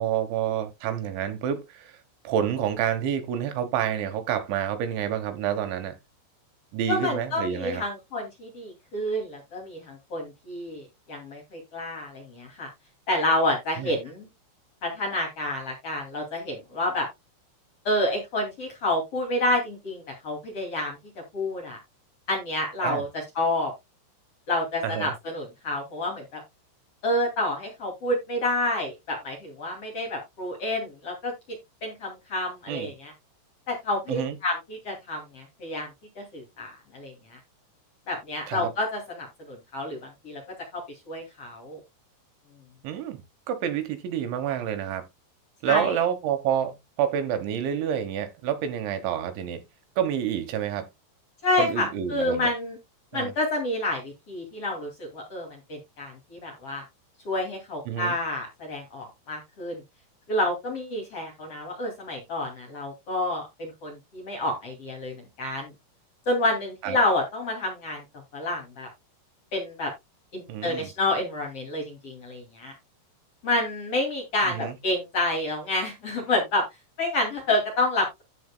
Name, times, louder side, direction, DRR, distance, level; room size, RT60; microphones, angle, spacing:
voice 1, 0.0-2.0 2.2-5.9 6.7-7.8 13.8-13.9 22.8-23.0 24.8-25.1 32.7-32.9 34.1-34.4 38.5-38.7 42.8-43.2 43.5-45.0 45.6-49.6 50.0-50.9 51.6-52.5 53.1-53.3 57.9-58.2 66.8-67.0 70.5-70.9 74.5-74.8, right 9 dB, 75° right, 3.4 m, -28 dB
voice 2, 6.9-12.7 13.1-14.3 14.8-17.1 17.8-21.0 21.3-21.8 22.3-23.7 24.5-26.4 27.0-31.3 31.8-33.1 33.7-35.9 36.2-37.4 38.1-40.4 40.7-41.8 45.6-46.0 51.4-52.8 53.1-56.8 57.2-59.8 60.3-65.7 66.3-68.0 68.3-68.9 69.5-69.9 70.3-72.7 73.4-76.6 77.0-78.2, left 1 dB, 40° left, 2.7 m, -29 dB
14.5 x 4.9 x 2.2 m
omnidirectional pair, 5.6 m